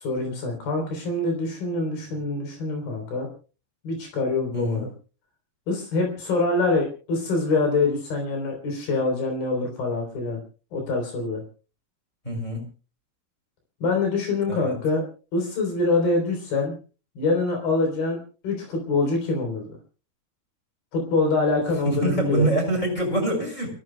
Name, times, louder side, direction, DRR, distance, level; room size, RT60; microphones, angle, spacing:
voice 1, 0.0-3.3 3.8-4.9 5.7-10.4 10.7-11.4 13.8-15.0 15.3-16.7 17.2-18.2 18.4-19.7 20.9-22.5, left 3 dB, 90° left, 3 dB, 5.5 m, -25 dB
voice 2, 4.5-4.9 12.2-12.6 14.5-14.8 21.8-23.7, right 1 dB, 10° left, 2 dB, 5.9 m, -25 dB
29.5 x 15.5 x 2.2 m, 0.35 s
omnidirectional pair, 4.1 m